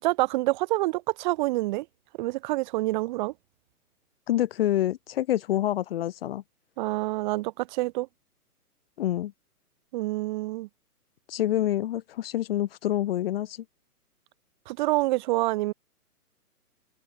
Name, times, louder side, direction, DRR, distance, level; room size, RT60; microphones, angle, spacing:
voice 1, 0.0-1.9 2.2-3.3 6.8-8.1 9.9-10.7 14.7-15.7, right 19 dB, 30° right, 2.1 m, -27 dB
voice 2, 4.3-6.4 9.0-9.3 11.3-13.6, left 13 dB, 40° left, 1.4 m, -27 dB
hypercardioid pair, 145°, 46 cm